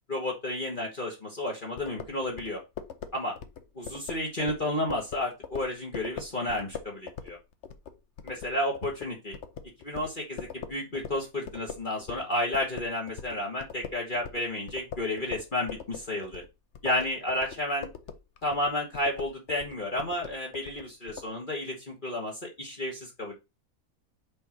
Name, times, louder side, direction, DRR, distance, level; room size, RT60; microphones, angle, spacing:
voice 1, 0.1-2.6 3.1-3.4 3.7-7.4 8.2-9.3 9.8-16.4 16.8-17.9 18.4-23.3, left 1 dB, 35° left, -2 dB, 1.6 m, -31 dB
sound 1, 1.8-12.3 12.5-21.3, left 7 dB, 55° left, 1.0 m, -42 dB
5.4 x 4.2 x 6.0 m, 0.25 s
omnidirectional pair, 1.6 m